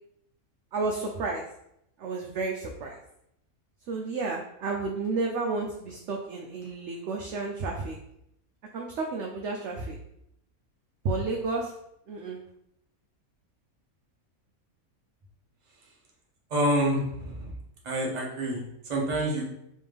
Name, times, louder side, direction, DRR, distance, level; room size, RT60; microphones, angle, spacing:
voice 1, 0.7-1.4 2.0-3.0 3.9-7.9 8.7-10.0 11.0-11.7 12.1-12.4, right 3 dB, 65° right, 1 dB, 0.7 m, -31 dB
voice 2, 16.5-17.5 17.8-19.5, right 1 dB, 35° right, -2 dB, 0.8 m, -27 dB
3.4 x 3.1 x 3.3 m, 0.77 s
omnidirectional pair, 1.5 m